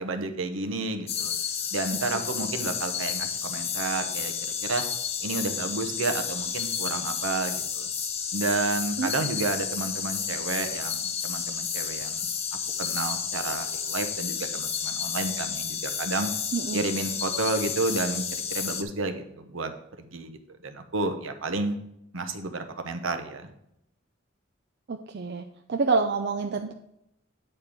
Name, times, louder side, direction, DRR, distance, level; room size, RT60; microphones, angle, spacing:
voice 1, 0.0-1.3 1.7-4.3 4.6-4.8 5.2-7.9 8.3-12.3 12.8-16.3 16.7-18.2 18.5-19.7 20.0-21.8 22.1-23.5, right 3 dB, 70° right, 7 dB, 0.9 m, -31 dB
sound 1, 1.1-18.8, left 7 dB, 30° left, 0.6 m, -31 dB
voice 2, 16.5-16.9 24.9-25.4 25.7-26.7, right 4 dB, 50° right, 5 dB, 0.5 m, -27 dB
9.0 x 4.4 x 5.0 m, 0.82 s
head